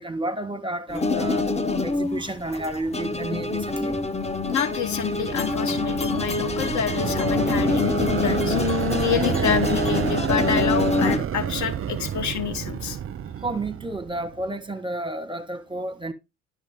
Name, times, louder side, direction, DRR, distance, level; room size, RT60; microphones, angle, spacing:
voice 1, 0.0-1.5 1.8-4.0 13.4-16.1, right 2 dB, 15° right, 1.5 m, -31 dB
sound 1, 0.9-11.2, left 3 dB, 15° left, 1.0 m, -25 dB
voice 2, 4.4-13.0, left 8 dB, 50° left, 1.1 m, -28 dB
sound 2, 4.6-14.4, right 9 dB, 35° right, 0.7 m, -29 dB
11.0 x 6.2 x 3.7 m
hypercardioid pair, 60°, 37 cm